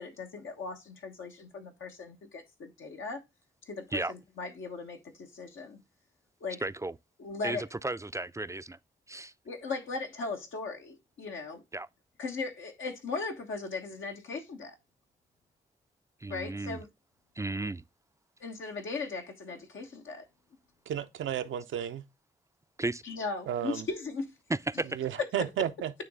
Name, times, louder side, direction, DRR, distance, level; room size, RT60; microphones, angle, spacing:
voice 1, 0.0-3.2 3.7-5.8 6.4-6.6 7.2-7.6 9.4-11.6 12.2-14.8 16.3-16.9 18.4-20.2 23.0-24.3, left 4 dB, 85° left, 1.3 m, -38 dB
voice 2, 6.6-7.0 7.4-8.8 9.1-9.3 11.7-11.9 16.2-16.8 17.4-17.8 22.8-23.0 24.5-25.0, right 2 dB, 15° right, 0.4 m, -34 dB
voice 3, 20.9-22.0 23.5-23.9 24.9-25.9, right 10 dB, 85° right, 0.6 m, -33 dB
9.2 x 3.2 x 3.6 m
supercardioid pair, 40°, 20 cm